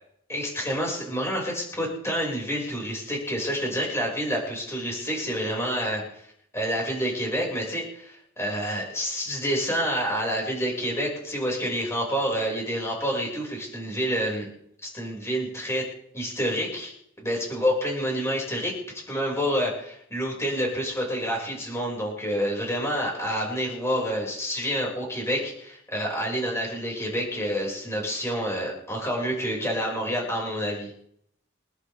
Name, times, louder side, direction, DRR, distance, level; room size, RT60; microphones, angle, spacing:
voice 1, 0.3-6.0 6.5-14.5 14.8-15.8 16.1-16.9 17.2-18.7 19.1-30.9, equal, 15° left, -2 dB, 6.5 m, -28 dB
29.5 x 11.5 x 3.7 m, 0.71 s
head